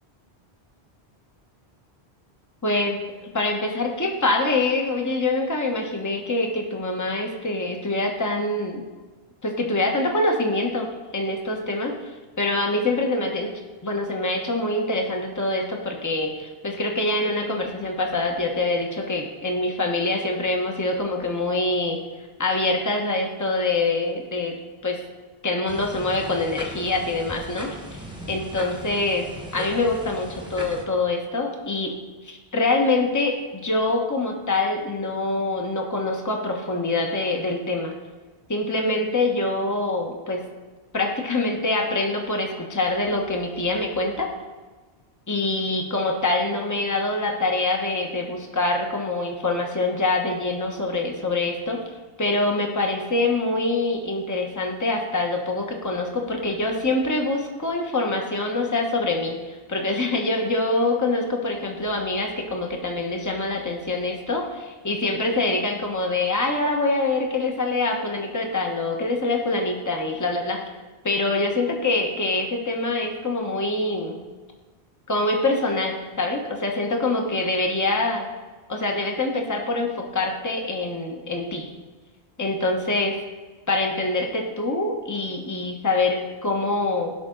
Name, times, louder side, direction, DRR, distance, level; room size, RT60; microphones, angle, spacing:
voice 1, 2.6-8.8 9.4-10.9 11.1-12.0 12.4-13.5 13.8-22.0 22.4-24.5 24.8-25.0 25.4-32.0 32.2-37.9 38.5-40.4 40.9-44.3 45.3-51.8 52.2-70.6 71.0-74.2 75.1-78.3 78.7-81.7 82.4-83.2 83.7-87.1, left 2 dB, 15° left, 1 dB, 1.1 m, -25 dB
sound 1, 25.7-30.9, equal, 5° right, 1.3 m, -38 dB
17.0 x 6.0 x 3.9 m, 1.3 s
omnidirectional pair, 1.1 m